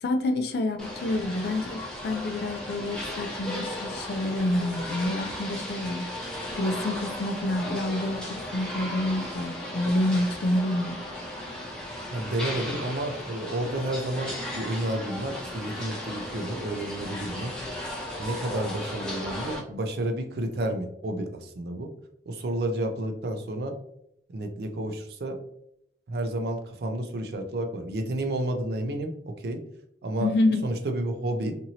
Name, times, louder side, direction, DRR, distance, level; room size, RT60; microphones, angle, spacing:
voice 1, 0.0-6.0 6.6-11.0 30.2-30.6, left 1 dB, 65° left, 6 dB, 0.4 m, -28 dB
sound 1, 0.8-19.6, left 1 dB, 5° left, 0.6 m, -36 dB
voice 2, 12.1-17.6 18.2-21.9 22.3-23.7 24.3-25.4 26.1-29.6 30.0-30.3 30.6-31.6, right 1 dB, 65° right, 5 dB, 0.4 m, -31 dB
2.8 x 2.6 x 2.7 m, 0.75 s
head